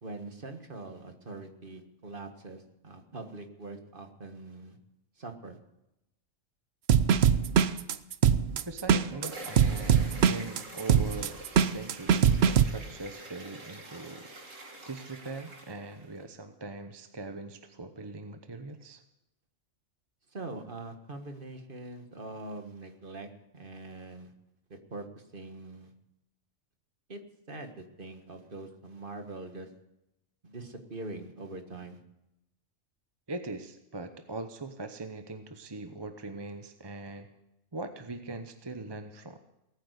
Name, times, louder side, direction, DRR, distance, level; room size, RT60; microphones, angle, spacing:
voice 1, 0.0-4.8 5.2-5.6 20.3-23.3 23.5-24.3 24.7-25.9 27.1-27.2 27.5-29.7 30.4-32.0, right 2 dB, 45° right, 6 dB, 1.7 m, -43 dB
sound 1, 6.9-12.7, right 8 dB, 60° right, 0.9 m, -22 dB
voice 2, 8.6-14.3 14.9-19.0 33.3-37.3 37.7-39.4, right 2 dB, 25° right, 8 dB, 0.8 m, -41 dB
sound 2, 8.7-16.2, right 2 dB, 80° right, 2.9 m, -46 dB
18.5 x 9.2 x 8.2 m, 0.89 s
omnidirectional pair, 1.3 m